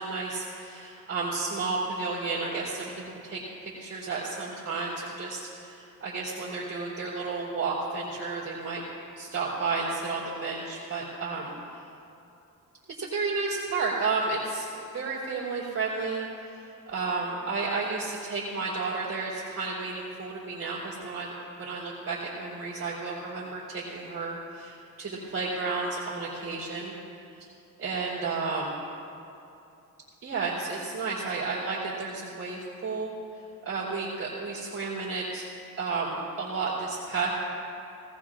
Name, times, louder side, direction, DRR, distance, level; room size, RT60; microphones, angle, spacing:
voice 1, 0.0-8.8 9.2-11.5 13.0-21.3 21.6-26.9 27.4-27.5 27.8-28.8 30.2-33.1 33.6-35.5 35.8-37.3, right 4 dB, 45° right, -8 dB, 4.0 m, -32 dB
19.0 x 18.5 x 2.6 m, 2.7 s
cardioid pair, 85°, 32 cm